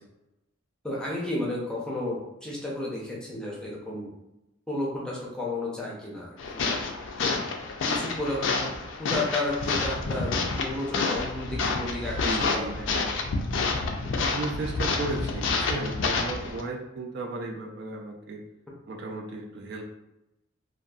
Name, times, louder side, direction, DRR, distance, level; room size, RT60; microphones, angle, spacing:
voice 1, 0.8-4.1 4.7-6.7 7.2-7.4 7.8-8.7 9.0-12.2 12.5-13.1, left 2 dB, 5° left, -5 dB, 0.5 m, -32 dB
sound 1, 6.4-16.6, left 3 dB, 70° left, 0.3 m, -29 dB
voice 2, 12.2-13.1 14.2-18.4 18.9-19.8, right 2 dB, 55° right, 1 dB, 0.3 m, -35 dB
2.6 x 2.3 x 2.3 m, 0.91 s
head